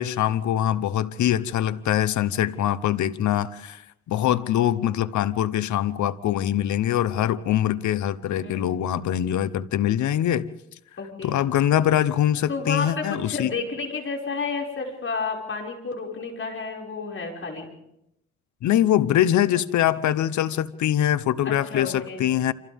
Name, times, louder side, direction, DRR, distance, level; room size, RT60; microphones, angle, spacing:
voice 1, 0.0-3.8 4.1-10.5 11.2-13.5 18.6-22.5, left 11 dB, 70° left, 1.0 m, -23 dB
voice 2, 11.0-11.4 12.5-17.7 21.4-22.2, left 4 dB, 45° left, 5.9 m, -31 dB
28.5 x 26.5 x 3.6 m
cardioid pair, 90°, 30 cm